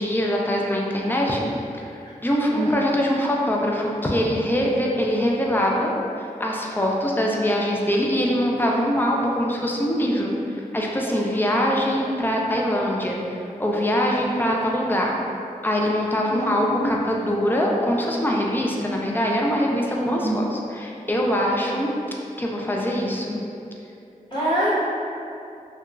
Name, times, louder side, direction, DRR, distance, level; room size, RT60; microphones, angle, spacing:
voice 1, 0.0-1.9 2.2-5.9 6.2-15.2 15.6-21.9 22.4-23.4, equal, 15° left, -2 dB, 0.3 m, -23 dB
voice 2, 16.2-16.9 20.0-20.4 24.3-24.7, right 1 dB, 35° left, -11 dB, 1.1 m, -25 dB
2.8 x 2.3 x 2.3 m, 2.6 s
wide cardioid pair, 70°, 14 cm